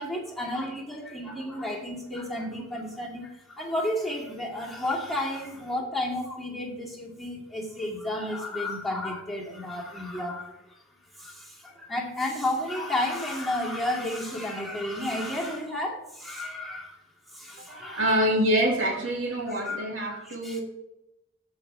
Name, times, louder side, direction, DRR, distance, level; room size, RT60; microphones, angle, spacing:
voice 1, 0.0-10.8 11.1-18.3 19.5-20.6, left 1 dB, ahead, -4 dB, 2.4 m, -32 dB
voice 2, 17.7-20.6, right 1 dB, 90° right, -1 dB, 2.9 m, -26 dB
15.0 x 5.5 x 3.4 m, 0.88 s
head